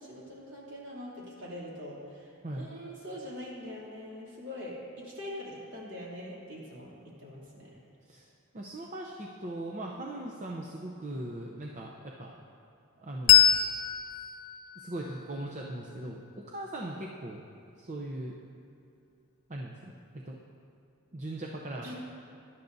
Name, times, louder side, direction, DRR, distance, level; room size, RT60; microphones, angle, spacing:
voice 1, 0.0-6.9 7.2-7.7 21.8-21.9, left 1 dB, 55° right, -6 dB, 2.9 m, -43 dB
voice 2, 8.1-12.3 13.0-13.5 14.8-17.4 17.8-18.3 19.5-20.4 21.1-21.9, right 1 dB, 35° right, -1 dB, 0.6 m, -39 dB
Bell, 13.3-16.4, left 10 dB, 85° left, 0.8 m, -26 dB
17.5 x 11.5 x 2.7 m, 2.4 s
head